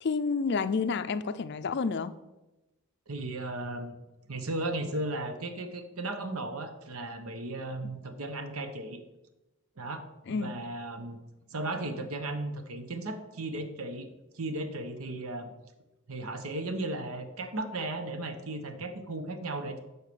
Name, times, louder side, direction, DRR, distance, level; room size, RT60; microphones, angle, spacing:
voice 1, 0.0-2.2 10.3-10.5, left 4 dB, 50° left, 13 dB, 0.4 m, -29 dB
voice 2, 3.1-3.9 4.3-9.0 9.8-11.2 11.5-14.1 14.3-15.5 16.1-19.8, right 2 dB, 75° right, 7 dB, 1.0 m, -35 dB
8.1 x 4.8 x 6.9 m, 1.0 s
head